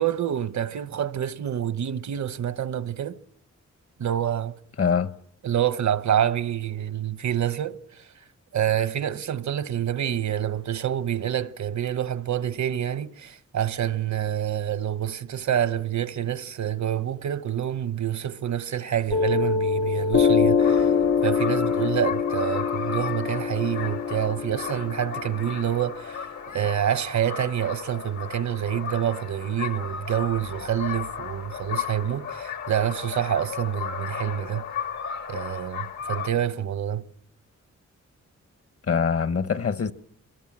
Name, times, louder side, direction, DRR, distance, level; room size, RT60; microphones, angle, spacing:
voice 1, 0.0-3.2 4.0-4.6 5.4-8.1 8.5-20.9 21.2-34.7 35.3-37.1, right 10 dB, 75° right, 1.0 m, -27 dB
voice 2, 4.8-5.1 38.9-39.9, left 6 dB, 55° left, 1.1 m, -23 dB
Piano, 19.1-26.2, left 6 dB, 90° left, 1.3 m, -24 dB
sound 1, 20.6-36.3, left 7 dB, 75° left, 1.8 m, -35 dB
26.0 x 22.0 x 7.4 m
wide cardioid pair, 110°, 29 cm